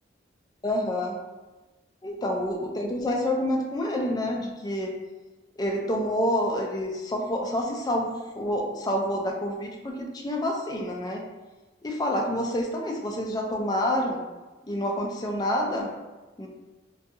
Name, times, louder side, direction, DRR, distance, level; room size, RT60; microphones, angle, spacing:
voice 1, 0.6-1.2 2.0-4.9 5.6-11.3 11.8-14.2 14.7-15.9 16.4-16.5, left 1 dB, 20° left, 1 dB, 0.3 m, -28 dB
2.6 x 2.3 x 2.6 m, 1.2 s
head